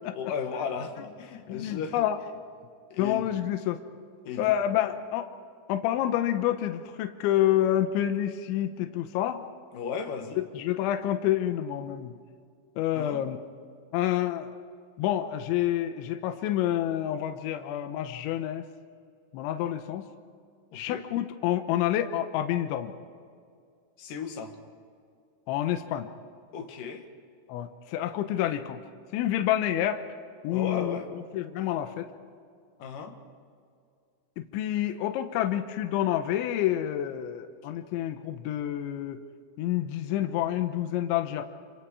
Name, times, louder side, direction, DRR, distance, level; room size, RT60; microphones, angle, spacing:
voice 1, 0.2-2.0 2.9-3.2 4.2-5.0 9.7-10.4 12.9-13.2 20.7-21.0 24.0-24.6 26.5-27.0 30.5-31.1 32.8-33.2, left 6 dB, 55° left, 4 dB, 2.8 m, -35 dB
voice 2, 1.5-2.2 3.0-3.8 4.4-5.3 5.7-9.4 10.4-12.2 12.8-13.4 13.9-14.6 15.0-18.6 19.3-20.1 20.7-22.9 25.5-26.1 27.5-28.8 29.1-30.0 30.4-31.0 31.3-32.1 34.4-39.2 39.6-41.4, left 12 dB, 80° left, 7 dB, 3.3 m, -28 dB
26.5 x 26.5 x 4.9 m, 2.2 s
omnidirectional pair, 5.4 m